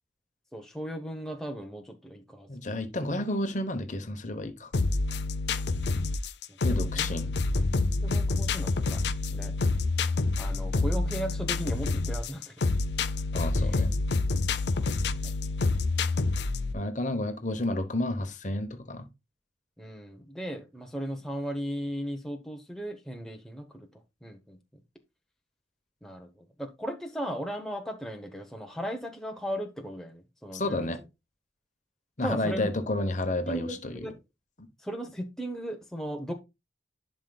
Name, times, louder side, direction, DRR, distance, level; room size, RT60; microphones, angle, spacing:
voice 1, 0.5-2.5 6.7-7.1 8.0-9.0 9.3-9.5 10.4-12.5 13.6-13.8 14.7-15.3 19.8-23.9 24.2-24.6 26.0-30.9 32.2-32.7 33.5-34.2 34.8-36.3, equal, 5° left, 0.9 m, -37 dB
voice 2, 2.5-4.7 6.6-7.3 13.3-13.9 16.7-19.1 30.5-31.0 32.2-34.1, left 1 dB, 45° left, 1.0 m, -31 dB
sound 1, 4.7-16.7, left 3 dB, 70° left, 0.5 m, -27 dB
11.0 x 5.3 x 2.3 m
head